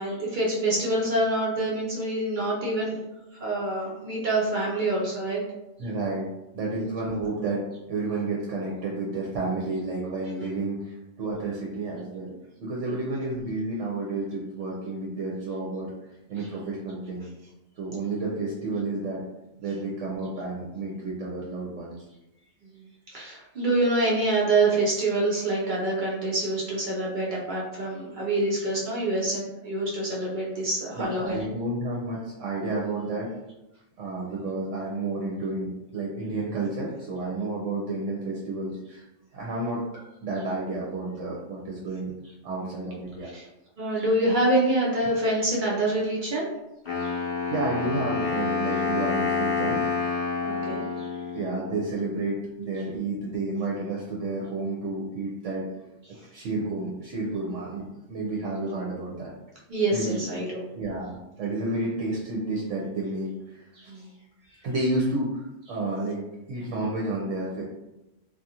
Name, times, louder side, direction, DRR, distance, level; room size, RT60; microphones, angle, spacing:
voice 1, 0.0-3.0 3.4-5.4 6.6-6.9 12.8-13.0 16.4-16.5 22.7-31.4 42.6-42.8 43.3-43.4 43.8-46.5 47.0-47.2 50.4-51.2 56.2-56.3 59.7-60.6 63.8-64.1 64.5-64.6, right 2 dB, 60° right, -5 dB, 0.5 m, -26 dB
voice 2, 5.8-6.3 6.5-12.3 12.6-15.9 16.3-17.3 17.8-19.2 19.6-21.9 31.0-33.3 34.0-39.0 39.3-39.8 40.2-42.1 42.4-43.3 47.5-49.9 51.3-55.6 56.3-59.3 59.9-60.2 60.7-63.9 64.6-66.2 66.5-67.6, right 2 dB, 75° right, -4 dB, 0.9 m, -31 dB
Wind instrument woodwind instrument, 46.9-51.8, left 5 dB, 45° left, 0.7 m, -28 dB
2.4 x 2.4 x 2.7 m, 0.96 s
omnidirectional pair, 1.3 m